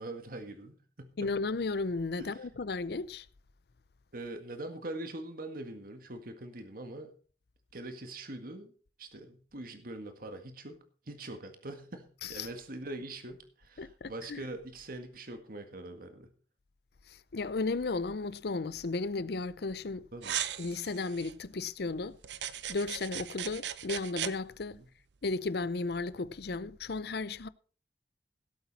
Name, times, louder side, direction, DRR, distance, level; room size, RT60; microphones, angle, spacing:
voice 1, 0.0-1.3 2.2-2.5 4.1-7.1 7.7-8.7 9.0-16.3 20.1-20.4 24.8-24.9, right 2 dB, 55° right, 1.8 m, -43 dB
voice 2, 1.2-3.3 12.2-12.5 13.8-14.4 17.1-20.0 20.6-22.2 22.7-24.8 25.2-27.5, left 3 dB, 65° left, 0.6 m, -34 dB
sound 1, 20.2-21.3 22.2-24.3, right 10 dB, 80° right, 0.7 m, -37 dB
17.0 x 8.2 x 4.2 m
head